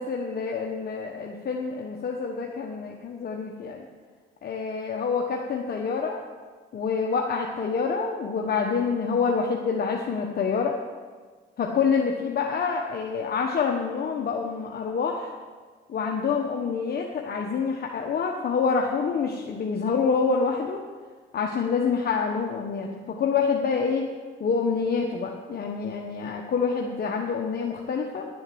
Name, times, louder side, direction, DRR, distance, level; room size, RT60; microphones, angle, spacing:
voice 1, 0.0-3.8 4.4-6.2 6.7-10.8 11.6-15.3 15.9-20.8 21.3-24.1 24.4-28.3, left 5 dB, 50° left, 1 dB, 1.2 m, -27 dB
11.5 x 7.6 x 7.8 m, 1.5 s
cardioid pair, 90°, 20 cm